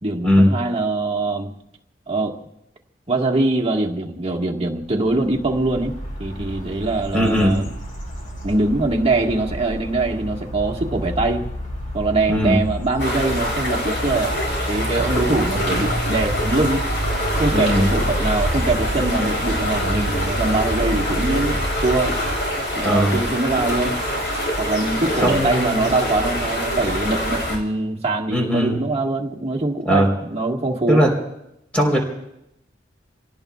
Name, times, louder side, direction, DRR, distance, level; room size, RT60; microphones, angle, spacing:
voice 1, 0.0-1.5 2.1-2.4 3.1-7.7 8.4-11.5 11.9-14.3 14.7-16.9 17.3-22.1 22.7-24.0 24.6-31.0, right 2 dB, 35° right, 1 dB, 1.6 m, -23 dB
sound 1, 5.0-22.6, right 1 dB, 45° left, 4.4 m, -29 dB
voice 2, 7.1-7.6 12.3-12.6 17.5-17.9 22.8-23.2 25.2-25.9 28.3-28.8 29.8-30.1 30.9-31.1 31.7-32.0, equal, 5° left, 0 dB, 3.8 m, -18 dB
sound 2, 13.0-27.6, equal, 70° left, 5.0 m, -25 dB
29.0 x 17.5 x 2.4 m, 0.82 s
head